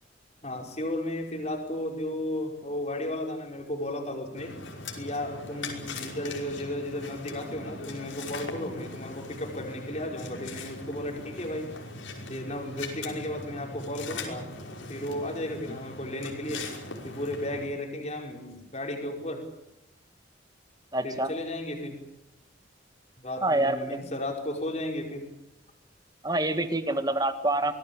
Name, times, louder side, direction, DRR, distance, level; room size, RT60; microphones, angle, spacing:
voice 1, 0.4-4.5 5.0-11.7 12.2-14.5 14.9-16.7 17.0-19.4 21.0-22.0 23.2-25.3, left 1 dB, 35° left, 2 dB, 5.2 m, -34 dB
sound 1, 4.4-17.7, left 3 dB, 85° left, 5.5 m, -40 dB
voice 2, 20.9-21.3 23.4-24.0 26.2-27.7, right 2 dB, 20° right, 9 dB, 1.9 m, -26 dB
25.0 x 19.0 x 8.9 m, 0.88 s
head